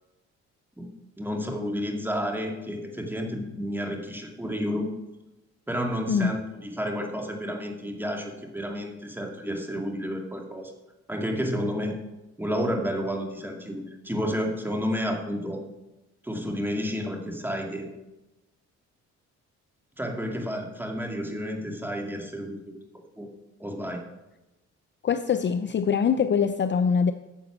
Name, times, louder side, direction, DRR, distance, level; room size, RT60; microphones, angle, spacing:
voice 1, 1.2-4.9 5.7-10.7 11.1-12.0 12.4-15.6 16.2-17.9 20.0-22.6 23.2-23.3 23.6-24.0, equal, 5° right, 1 dB, 2.3 m, -31 dB
voice 2, 25.0-27.1, left 6 dB, 40° left, 10 dB, 0.6 m, -23 dB
10.0 x 7.0 x 7.3 m, 0.99 s
cardioid pair, 90°, 30 cm